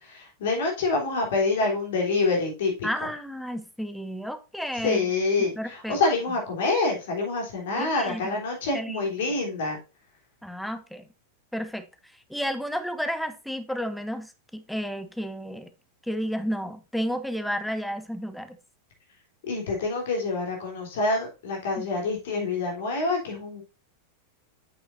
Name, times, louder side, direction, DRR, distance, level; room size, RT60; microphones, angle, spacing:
voice 1, 0.0-2.9 4.8-9.8 19.4-23.6, left 3 dB, 55° left, 3.4 m, -26 dB
voice 2, 2.8-5.1 5.6-6.0 7.8-8.4 8.7-9.4 10.4-11.1 11.5-15.7 16.0-18.6 21.8-21.9, equal, ahead, 0.8 m, -32 dB
8.2 x 6.9 x 2.6 m
figure-of-eight pair, 90°, 0 cm